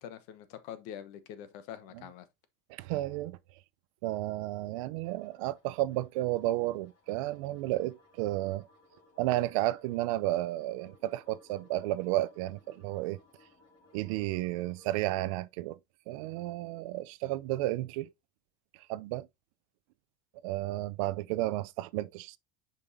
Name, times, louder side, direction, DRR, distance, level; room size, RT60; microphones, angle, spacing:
voice 1, 0.0-2.3, left 10 dB, 60° left, 1.0 m, -45 dB
voice 2, 2.7-3.4 4.0-8.7 9.2-13.2 13.9-15.8 16.1-18.1 18.9-19.3 20.4-22.4, right 16 dB, 75° right, 0.5 m, -32 dB
sound 1, 5.0-15.2, left 2 dB, 40° left, 3.2 m, -62 dB
6.9 x 5.3 x 2.6 m
cardioid pair, 165°, 17 cm